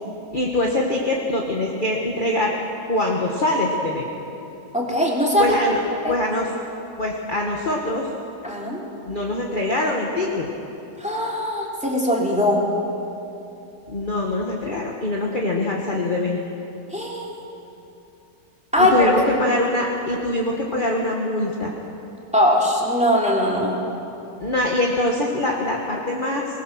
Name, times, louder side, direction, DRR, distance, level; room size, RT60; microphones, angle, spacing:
voice 1, 0.3-2.6 2.9-4.0 5.4-5.8 6.1-6.5 7.0-8.1 9.1-10.5 13.9-16.4 18.8-21.7 24.4-26.5, left 1 dB, 30° left, -1 dB, 1.5 m, -23 dB
voice 2, 4.7-5.6 6.0-6.1 8.4-8.8 11.0-12.6 16.9-17.4 18.7-19.1 22.3-23.7, left 1 dB, 5° right, -3 dB, 3.0 m, -20 dB
22.5 x 19.5 x 6.2 m, 2.9 s
omnidirectional pair, 1.8 m